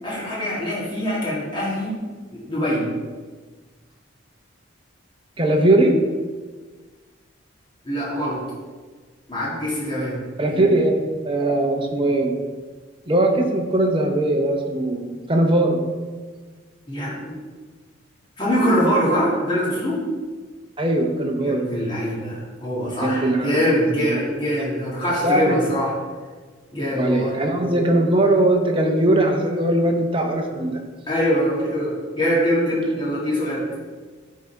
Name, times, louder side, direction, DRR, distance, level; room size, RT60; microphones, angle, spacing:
voice 1, 0.0-2.0 2.3-2.9 7.8-8.4 9.3-10.2 16.9-17.3 18.4-20.0 21.4-25.9 26.7-27.4 31.1-33.6, equal, 25° left, -7 dB, 2.0 m, -23 dB
voice 2, 5.4-6.0 10.4-11.0 11.2-12.4 13.1-15.8 20.8-21.7 23.0-23.6 24.0-24.2 24.6-24.7 25.2-25.6 26.9-30.8, right 1 dB, 25° right, 2 dB, 0.7 m, -20 dB
9.2 x 3.8 x 4.5 m, 1.4 s
head